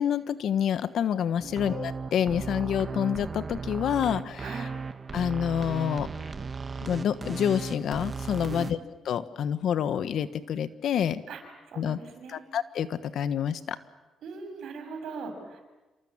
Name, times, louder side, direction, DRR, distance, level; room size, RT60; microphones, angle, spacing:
voice 1, 0.0-4.6 5.1-6.1 6.8-8.8 9.0-11.2 11.8-12.0 12.3-13.8, left 9 dB, 70° left, 13 dB, 1.3 m, -28 dB
sound 1, 1.4-8.7, right 4 dB, 35° right, 1.5 m, -36 dB
voice 2, 4.4-4.8 8.4-8.7 11.3-11.4 11.7-12.4 14.2-15.6, right 4 dB, 70° right, 5 dB, 6.8 m, -40 dB
28.0 x 27.0 x 7.4 m, 1.1 s
cardioid pair, 90°, 0 cm